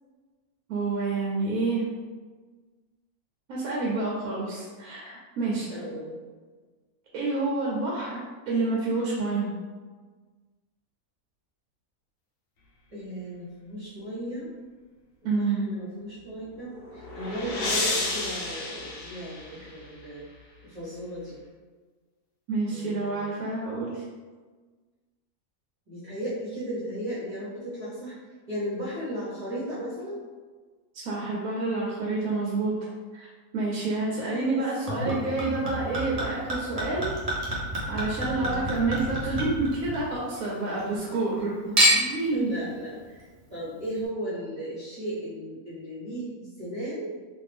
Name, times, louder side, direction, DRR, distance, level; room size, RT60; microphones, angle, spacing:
voice 1, 0.7-1.9 3.5-5.7 7.1-8.2 8.5-9.5 15.2-15.6 22.5-24.0 30.9-32.7 33.1-37.2 37.9-42.5, right 3 dB, 70° right, -4 dB, 1.0 m, -28 dB
voice 2, 5.7-6.2 12.9-14.5 15.2-20.3 20.6-21.4 22.7-23.5 25.9-30.3 34.2-34.6 38.3-38.7 41.0-41.3 42.3-47.1, equal, 30° right, -11 dB, 0.8 m, -36 dB
sound 1, 16.5-19.9, left 2 dB, 65° left, 1.0 m, -32 dB
Chink clink / Liquid, 34.9-40.4 40.7-41.4 41.8-42.3 43.0-43.1, equal, 45° right, 0.4 m, -28 dB
2.6 x 2.5 x 3.3 m, 1.4 s
omnidirectional pair, 1.6 m